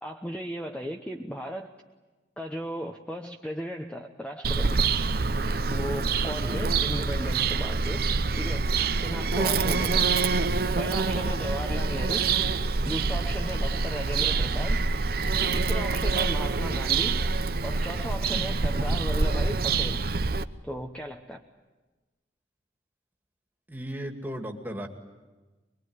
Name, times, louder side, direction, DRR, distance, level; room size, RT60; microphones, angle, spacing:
voice 1, 0.0-1.7 2.4-4.8 5.7-8.0 8.4-8.7 9.0-10.1 10.8-12.2 12.8-14.8 15.5-17.3 17.6-20.0 20.6-21.4, equal, 5° left, 3 dB, 0.9 m, -36 dB
Bird vocalization bird call bird song, 4.4-20.4, right 4 dB, 55° right, 0.7 m, -26 dB
Musical instrument, 8.5-17.1, right 5 dB, 70° right, 1.7 m, -45 dB
voice 2, 23.7-24.9, equal, 10° right, 2 dB, 2.2 m, -37 dB
23.5 x 22.5 x 9.5 m, 1.2 s
head